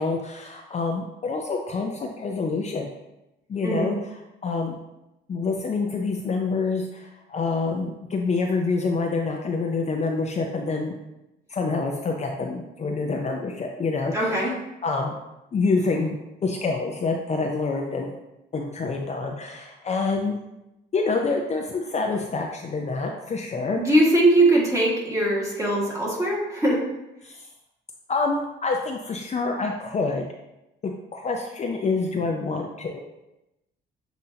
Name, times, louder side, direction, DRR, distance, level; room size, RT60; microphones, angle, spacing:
voice 1, 0.0-2.9 3.5-4.8 5.3-11.0 11.5-15.1 15.5-18.2 18.5-20.4 20.9-24.2 27.2-27.5 28.1-30.3 30.8-33.0, left 3 dB, 35° left, 1 dB, 0.5 m, -27 dB
voice 2, 3.6-3.9 14.1-14.5 23.8-26.8, right 1 dB, 15° right, -4 dB, 1.6 m, -21 dB
7.4 x 2.7 x 2.7 m, 0.94 s
cardioid pair, 90°, 20 cm